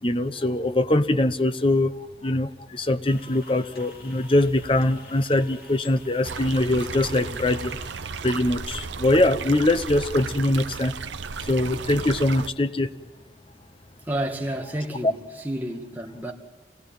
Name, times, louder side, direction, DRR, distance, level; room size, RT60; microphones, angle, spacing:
voice 1, 0.0-7.8 8.2-10.9 11.4-12.9 15.0-15.1, left 1 dB, 30° left, 0.8 m, -23 dB
sound 1, 3.1-7.9, left 3 dB, 55° left, 2.8 m, -49 dB
sound 2, 6.2-12.5, right 5 dB, 80° right, 0.8 m, -34 dB
voice 2, 14.1-15.1 15.4-16.3, right 1 dB, 10° right, 2.1 m, -30 dB
27.5 x 19.0 x 9.1 m
head